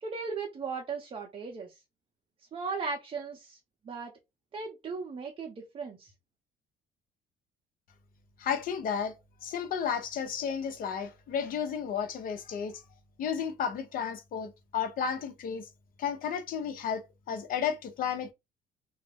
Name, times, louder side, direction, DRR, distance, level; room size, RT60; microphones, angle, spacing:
voice 1, 0.0-1.8 2.5-3.6 3.8-4.1 4.5-6.1, right 4 dB, 35° right, 0.6 m, -37 dB
voice 2, 8.4-9.1 9.4-12.8 13.2-15.7 16.0-18.3, left 7 dB, 55° left, 0.7 m, -33 dB
2.3 x 2.0 x 3.4 m
cardioid pair, 110°, 17 cm